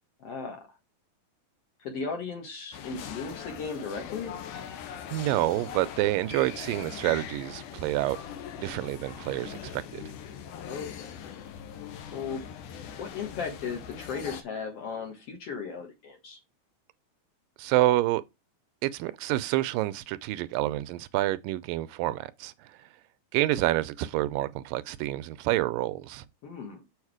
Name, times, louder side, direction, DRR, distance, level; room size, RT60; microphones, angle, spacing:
voice 1, 0.2-0.7 1.8-4.4 10.7-11.2 12.1-12.4 13.0-16.4 26.4-26.8, left 5 dB, 55° left, 2.1 m, -36 dB
sound 1, 2.7-14.4, left 9 dB, 70° left, 2.4 m, -41 dB
voice 2, 5.1-8.2 8.6-10.0 17.6-18.2 18.8-22.7 23.3-26.2, right 16 dB, 80° right, 2.2 m, -28 dB
7.2 x 4.9 x 4.8 m
omnidirectional pair, 4.0 m